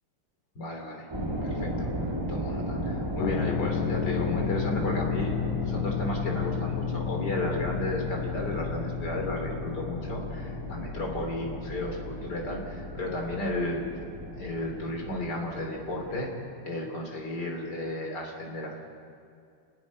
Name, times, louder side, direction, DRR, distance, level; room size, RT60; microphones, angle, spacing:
voice 1, 0.6-1.1 1.4-5.3 5.6-13.8 14.3-16.3 16.6-18.8, left 1 dB, 50° left, 1 dB, 3.8 m, -33 dB
sound 1, 1.1-16.3, equal, 10° right, 3.0 m, -36 dB
sound 2, 3.2-14.8, left 10 dB, 75° left, 1.6 m, -34 dB
29.5 x 9.9 x 9.8 m, 2.3 s
omnidirectional pair, 2.3 m